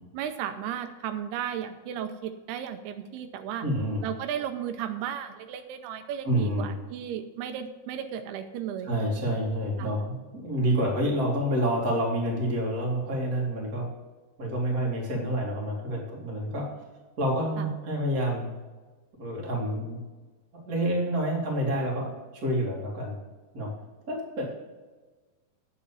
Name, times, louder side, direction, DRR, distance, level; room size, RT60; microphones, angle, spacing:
voice 1, 0.1-3.7 4.0-9.0 9.8-9.9 17.6-17.7, right 9 dB, 85° right, 8 dB, 2.7 m, -34 dB
voice 2, 3.6-4.1 6.2-6.7 8.8-13.9 14.4-16.7 17.2-18.5 19.2-20.0 20.5-23.2 23.5-23.7 24.1-24.5, right 1 dB, 25° right, -2 dB, 2.3 m, -28 dB
8.6 x 6.9 x 6.9 m, 1.3 s
omnidirectional pair, 4.6 m